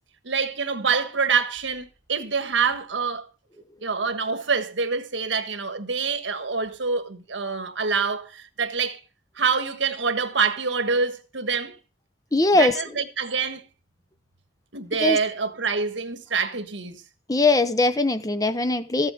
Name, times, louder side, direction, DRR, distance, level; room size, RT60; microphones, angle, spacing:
voice 1, 0.2-3.3 3.8-9.0 9.4-11.8 12.5-13.6 14.7-17.0, right 5 dB, 85° right, 1.5 m, -26 dB
voice 2, 12.3-12.7 15.0-15.2 17.3-19.1, left 2 dB, 20° left, 0.8 m, -20 dB
14.5 x 8.2 x 4.9 m
head